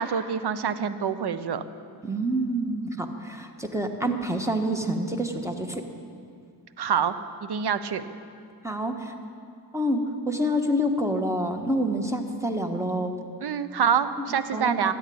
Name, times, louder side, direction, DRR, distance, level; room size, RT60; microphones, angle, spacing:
voice 1, 0.0-1.6 6.8-7.1 7.4-8.0 13.4-14.9, right 7 dB, 70° right, 12 dB, 0.9 m, -26 dB
voice 2, 2.0-5.8 8.6-9.1 9.7-13.1 14.5-14.9, equal, 5° right, 4 dB, 1.5 m, -27 dB
13.5 x 10.5 x 8.7 m, 2.4 s
wide cardioid pair, 85°, 40 cm